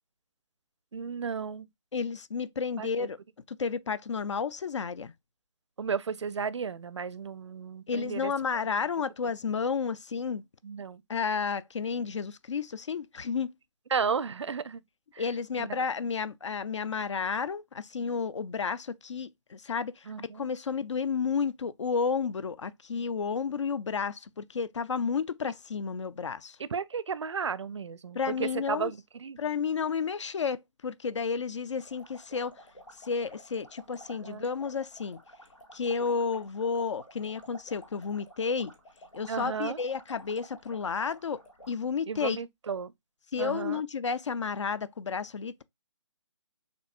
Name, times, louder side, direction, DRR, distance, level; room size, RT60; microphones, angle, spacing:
voice 1, 0.9-1.7 2.8-3.1 5.8-8.3 10.6-11.0 13.9-14.8 15.1-15.2 15.6-15.9 20.1-20.5 26.6-29.4 34.2-34.4 39.3-39.8 42.1-42.9 43.4-43.8, right 6 dB, 65° right, 0.4 m, -34 dB
voice 2, 1.9-3.2 3.6-5.1 7.9-10.4 11.1-13.5 15.2-20.1 20.3-26.6 28.1-28.9 29.4-32.5 33.0-35.2 35.7-38.7 39.1-41.4 41.7-42.4 43.3-45.6, left 5 dB, 65° left, 0.4 m, -31 dB
sound 1, 31.8-41.7, equal, 85° left, 1.9 m, -52 dB
6.7 x 2.6 x 2.3 m
figure-of-eight pair, 140°, 16 cm